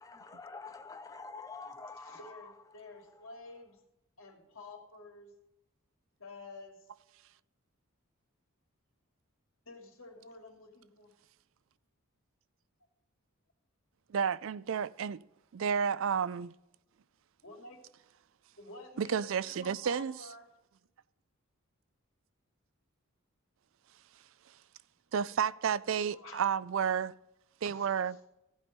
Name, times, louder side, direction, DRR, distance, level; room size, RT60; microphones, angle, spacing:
voice 1, 0.0-2.5, left 4 dB, 15° left, 0.4 m, -46 dB
voice 2, 1.6-3.8 4.2-5.3 6.2-6.9 9.6-11.1 17.4-17.8 18.6-20.4 26.1-26.5 27.6-27.9, left 3 dB, 65° left, 2.8 m, -51 dB
voice 3, 14.1-15.2 15.5-16.5 19.0-20.2 24.5-24.6 25.1-27.1 27.6-28.1, right 7 dB, 65° right, 0.4 m, -31 dB
15.5 x 5.4 x 6.6 m
head